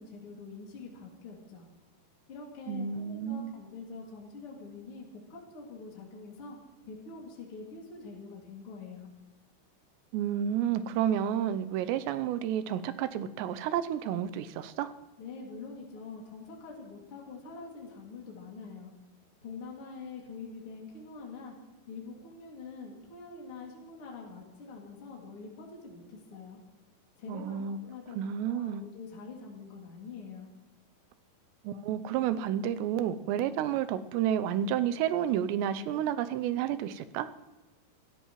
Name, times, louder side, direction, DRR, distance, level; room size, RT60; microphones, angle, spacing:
voice 1, 0.0-1.7 2.3-5.0 5.3-6.6 6.8-9.1 15.2-18.9 19.4-21.5 21.9-26.6 27.2-28.2 28.4-30.5, left 4 dB, 40° left, -2 dB, 2.8 m, -45 dB
voice 2, 2.7-3.5 10.1-14.9 27.3-27.8 28.2-28.8 31.6-37.3, right 10 dB, 85° right, 11 dB, 2.9 m, -30 dB
26.5 x 13.5 x 3.1 m, 1.1 s
omnidirectional pair, 4.9 m